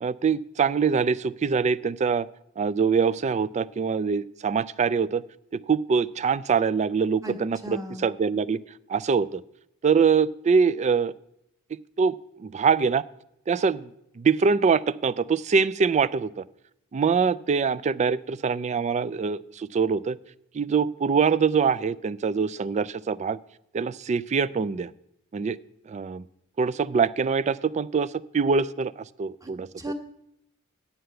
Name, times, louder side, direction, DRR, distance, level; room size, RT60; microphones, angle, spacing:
voice 1, 0.0-2.3 2.6-5.2 5.7-8.6 8.9-9.4 9.8-11.1 12.0-13.0 13.5-13.9 14.2-16.4 16.9-20.2 20.5-23.4 23.7-24.9 25.3-25.6 25.9-26.2 26.6-29.7, right 5 dB, 35° right, 17 dB, 0.3 m, -24 dB
voice 2, 7.6-8.1 29.4-29.5 29.8-29.9, equal, 15° right, 2 dB, 1.3 m, -35 dB
9.6 x 5.6 x 7.7 m, 0.79 s
head